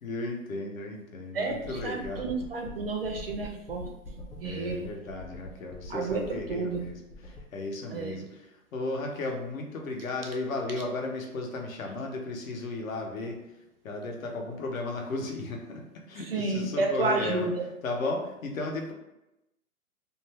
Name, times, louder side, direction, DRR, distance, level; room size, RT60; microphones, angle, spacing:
voice 1, 0.0-2.3 4.4-7.0 7.3-8.3 8.7-13.4 13.8-15.8 16.1-17.5 17.8-18.9, left 2 dB, 65° left, 1 dB, 0.8 m, -34 dB
voice 2, 1.3-3.9 4.3-4.8 5.9-6.8 7.9-8.2 16.2-17.6, right 3 dB, 45° right, 2 dB, 0.4 m, -31 dB
sound 1, 1.5-7.4, left 1 dB, 30° left, 0.9 m, -45 dB
2.5 x 2.2 x 3.2 m, 0.90 s
hypercardioid pair, 145°, 44 cm